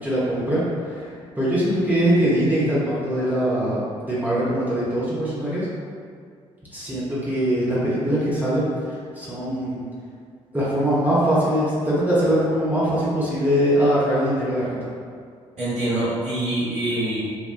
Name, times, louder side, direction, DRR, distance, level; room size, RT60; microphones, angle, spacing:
voice 1, 0.0-3.8 4.1-5.7 6.7-9.8 10.5-14.9, equal, 10° right, -9 dB, 0.8 m, -22 dB
voice 2, 15.6-17.2, right 1 dB, 45° right, -11 dB, 1.3 m, -25 dB
3.0 x 2.1 x 2.3 m, 2.2 s
hypercardioid pair, 45°, 16 cm